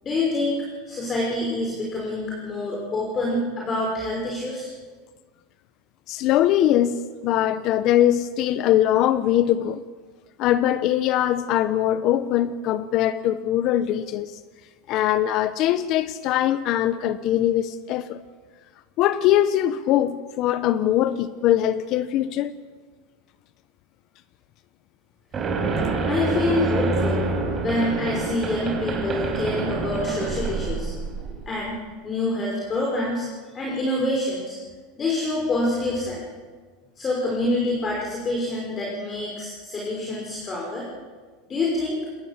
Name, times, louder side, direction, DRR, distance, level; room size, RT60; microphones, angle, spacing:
voice 1, 0.0-4.7 26.1-27.3 27.6-31.1 31.5-31.8 32.0-34.6 35.0-36.2 37.0-40.9 41.5-42.0, left 2 dB, 25° left, 5.7 m, -26 dB
voice 2, 6.1-9.8 10.4-14.4 14.9-18.2 19.0-22.5, left 12 dB, 50° left, 0.9 m, -22 dB
sound 1, 25.3-31.4, right 3 dB, 25° right, 5.0 m, -26 dB
27.0 x 20.0 x 7.5 m
supercardioid pair, 125°, 0 cm